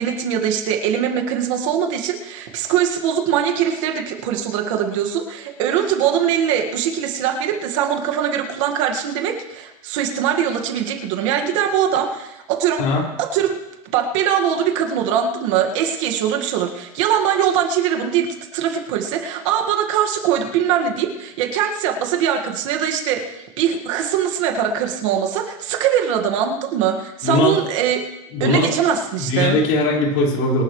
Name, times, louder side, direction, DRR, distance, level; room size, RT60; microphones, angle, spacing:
voice 1, 0.0-12.8 13.2-13.6 13.9-18.3 18.5-28.0 28.4-29.6, right 9 dB, 55° right, 3 dB, 1.9 m, -21 dB
voice 2, 27.2-27.6 28.3-28.7 29.2-30.6, left 2 dB, 55° left, -2 dB, 5.1 m, -19 dB
24.5 x 11.5 x 3.3 m, 0.96 s
supercardioid pair, 170°, 20 cm